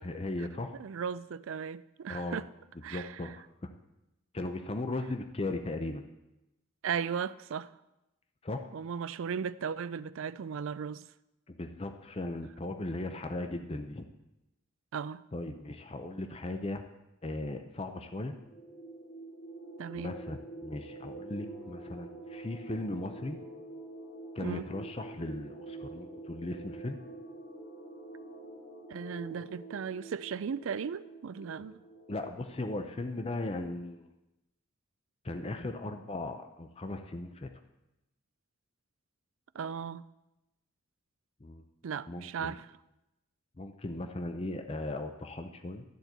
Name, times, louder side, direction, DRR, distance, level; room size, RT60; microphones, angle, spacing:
voice 1, 0.0-0.8 2.1-2.4 2.9-3.4 4.3-6.1 8.4-8.7 11.5-14.0 15.3-16.8 17.2-18.4 19.9-23.4 24.3-27.0 32.1-34.1 35.2-37.5 41.4-41.6 42.1-42.5 43.6-45.8, left 2 dB, 30° left, 0.6 m, -37 dB
voice 2, 0.7-2.5 2.8-3.2 6.8-7.7 8.7-11.0 14.9-15.2 19.8-20.1 24.4-24.7 28.9-31.8 39.5-40.0 41.8-42.7, right 7 dB, 75° right, 0.4 m, -36 dB
sound 1, 18.3-32.6, right 2 dB, 50° left, 4.9 m, -47 dB
13.0 x 4.4 x 8.0 m
head